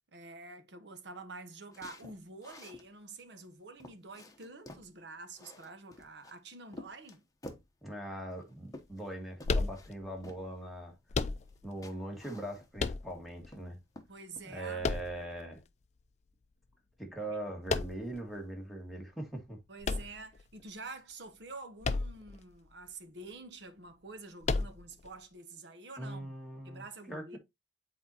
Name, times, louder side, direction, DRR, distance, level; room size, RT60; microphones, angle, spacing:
voice 1, 0.1-7.2 14.1-14.9 17.2-17.4 19.7-26.3 26.6-27.4, right 3 dB, 75° right, 1.1 m, -48 dB
sound 1, 1.7-2.9 3.4-3.5 3.8-4.9 5.3-6.3 6.7-7.7 8.3-9.1 9.4-9.9 10.2-10.4 11.5-11.6 11.8-12.9 13.3-13.7 13.9-14.5, left 1 dB, 20° left, 0.9 m, -51 dB
voice 2, 7.8-10.9 11.6-13.8 14.4-15.6 17.0-19.6 26.0-27.4, right 1 dB, ahead, 1.8 m, -41 dB
sound 2, 9.4-10.2 11.1-11.8 12.8-13.5 14.8-15.6 17.7-18.2 19.8-20.7 21.8-22.4 22.7-22.8 24.4-25.1, left 3 dB, 40° left, 0.4 m, -33 dB
7.7 x 4.3 x 2.8 m
head